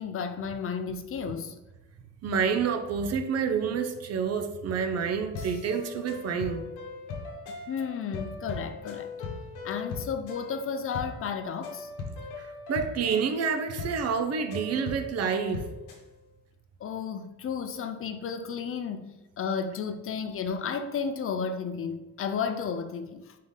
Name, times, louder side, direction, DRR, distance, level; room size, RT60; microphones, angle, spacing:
voice 1, 0.0-1.6 7.7-9.1 9.6-11.9 16.8-23.2, left 6 dB, 45° left, 0.4 m, -33 dB
voice 2, 2.2-6.6 12.4-15.7, right 6 dB, 55° right, 0.6 m, -28 dB
sound 1, 5.3-16.0, left 3 dB, 85° left, 0.9 m, -39 dB
3.8 x 3.7 x 3.6 m
cardioid pair, 90°, 30 cm